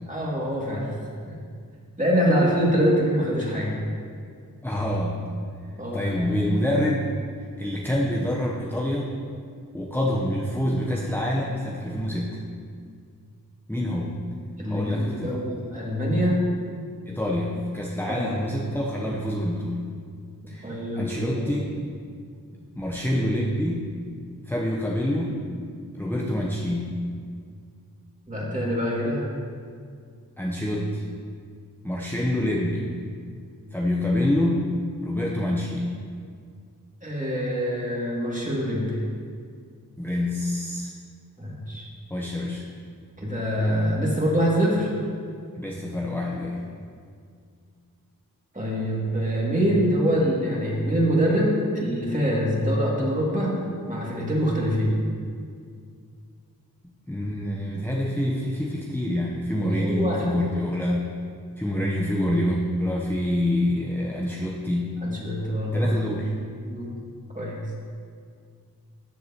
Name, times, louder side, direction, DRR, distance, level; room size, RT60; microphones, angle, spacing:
voice 1, 0.1-0.9 1.3-1.4 2.0-3.8 5.8-6.3 14.6-16.4 18.1-18.3 20.4-21.5 28.3-29.3 37.0-39.0 41.4-41.9 43.2-44.9 48.5-53.6 53.9-54.9 59.6-60.3 65.0-65.9 66.6-66.9 67.3-67.6, equal, 20° right, -5 dB, 2.5 m, -24 dB
voice 2, 4.6-5.2 5.9-7.1 7.6-9.1 9.7-12.4 13.7-14.2 14.7-15.4 17.1-19.9 20.5-21.7 22.8-23.9 24.5-25.4 25.9-27.0 30.4-31.1 31.8-32.9 33.7-34.7 35.0-35.9 40.0-40.9 42.1-42.7 45.5-46.7 57.1-61.1 61.6-65.0 65.7-66.3, left 1 dB, 5° left, -3 dB, 0.9 m, -26 dB
13.5 x 7.1 x 3.0 m, 2.2 s
wide cardioid pair, 55°, 36 cm